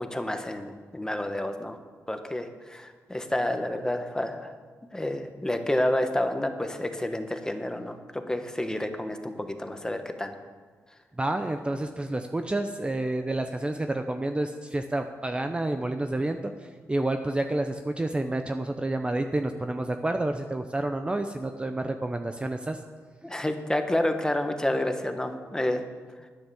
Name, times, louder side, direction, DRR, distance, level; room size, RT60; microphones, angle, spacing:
voice 1, 0.0-1.8 2.1-4.5 4.9-10.3 23.2-25.8, left 1 dB, 10° left, 7 dB, 1.3 m, -29 dB
voice 2, 11.2-22.8, right 2 dB, 20° right, 6 dB, 0.7 m, -29 dB
10.0 x 9.4 x 7.1 m, 1.5 s
cardioid pair, 80°, 6 cm